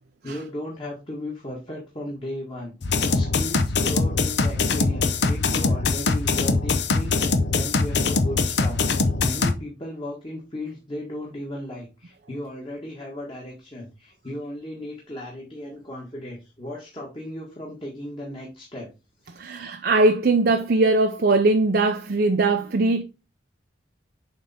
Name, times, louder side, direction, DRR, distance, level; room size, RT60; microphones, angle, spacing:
voice 1, 0.2-18.9 19.2-19.3, left 1 dB, 25° left, 1.7 m, -36 dB
sound 1, 2.8-9.5, left 3 dB, 60° left, 0.8 m, -22 dB
voice 2, 19.4-23.0, right 2 dB, 55° right, 0.5 m, -20 dB
7.5 x 3.5 x 4.2 m
head